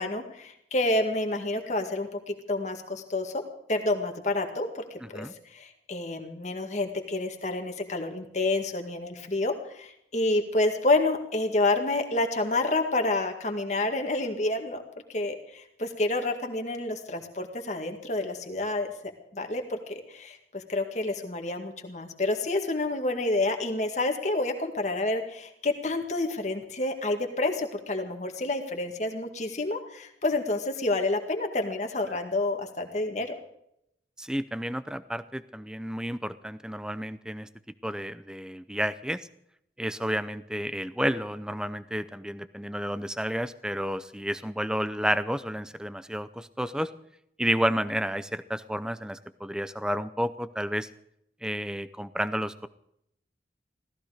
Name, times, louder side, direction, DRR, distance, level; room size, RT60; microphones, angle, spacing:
voice 1, 0.0-3.4 3.7-14.8 15.1-18.9 19.3-33.4, left 2 dB, 40° left, 4 dB, 2.0 m, -29 dB
voice 2, 34.2-37.5 37.8-39.2 39.8-46.9 47.4-50.9 51.4-52.7, equal, 5° right, 14 dB, 0.6 m, -31 dB
16.5 x 15.0 x 5.0 m, 0.75 s
head